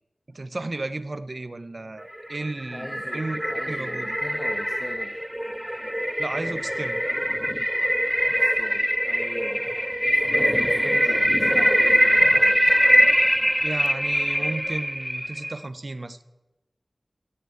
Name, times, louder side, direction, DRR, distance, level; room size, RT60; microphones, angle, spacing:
voice 1, 0.3-3.4 3.7-4.2 6.2-7.1 13.6-16.2, right 2 dB, 50° right, 13 dB, 0.7 m, -33 dB
sound 1, 2.2-15.6, equal, 5° right, 0.4 m, -22 dB
voice 2, 2.7-5.2 8.3-9.6 10.0-12.6, left 1 dB, 40° left, 4 dB, 1.2 m, -40 dB
12.5 x 7.8 x 7.9 m, 1.0 s
wide cardioid pair, 70°, 0 cm